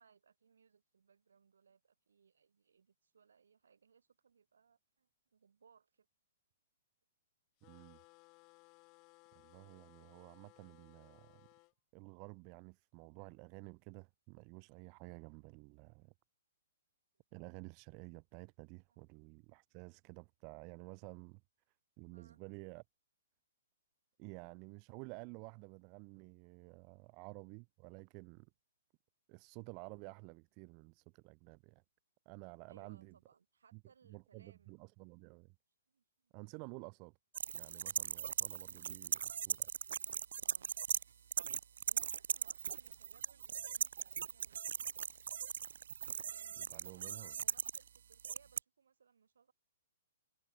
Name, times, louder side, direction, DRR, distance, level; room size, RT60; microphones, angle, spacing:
voice 1, 0.0-6.1 17.1-17.2 22.1-22.4 32.7-34.8 35.9-36.4 36.8-36.9 39.1-40.7 41.1-41.3 41.8-45.2 46.2-49.5, right 6 dB, 90° right, 7.3 m, -68 dB
sound 1, 7.6-11.7, left 28 dB, 20° left, 1.3 m, -64 dB
voice 2, 7.6-8.0 9.3-11.5 11.9-16.1 17.3-21.4 22.0-22.8 24.2-28.5 29.3-31.8 32.3-33.1 33.7-35.6 36.3-37.1 37.5-39.2 39.5-39.7 46.6-47.4, right 35 dB, 20° right, 1.9 m, -52 dB
sound 2, 37.3-41.0 41.3-48.6, right 8 dB, 55° right, 0.6 m, -39 dB
hypercardioid pair, 180°, 0 cm